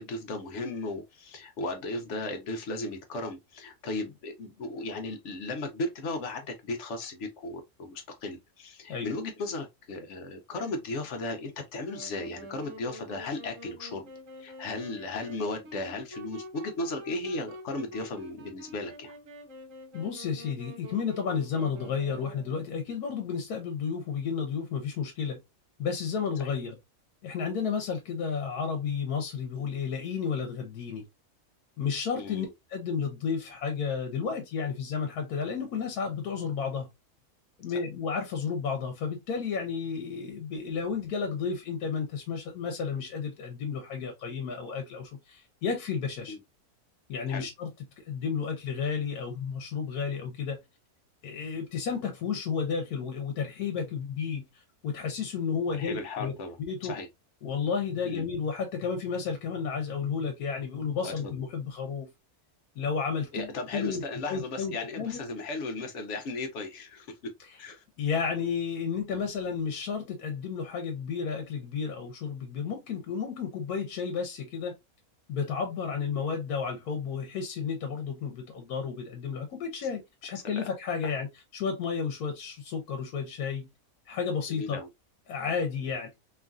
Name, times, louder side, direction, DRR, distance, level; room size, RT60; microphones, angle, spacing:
voice 1, 0.0-14.1 14.4-19.1 26.4-26.6 32.1-32.5 46.3-46.4 47.3-47.5 55.7-56.6 56.8-57.1 58.0-58.3 61.0-61.1 63.3-67.3 67.6-67.8 80.6-80.7 81.0-81.1 84.5-84.9 85.8-85.9, left 2 dB, 60° left, 0.9 m, -36 dB
Wind instrument woodwind instrument, 11.8-22.8, equal, 65° right, 1.0 m, -46 dB
voice 2, 19.9-25.4 25.8-26.8 27.2-31.0 31.8-36.9 37.6-46.4 47.1-47.7 48.0-50.6 51.2-56.3 56.6-56.9 57.4-62.1 62.8-64.0 64.3-65.2 68.0-74.8 75.3-81.3 81.5-83.7 84.1-84.8 85.3-86.1, left 6 dB, 85° left, 1.2 m, -32 dB
3.0 x 2.4 x 2.3 m
omnidirectional pair, 1.6 m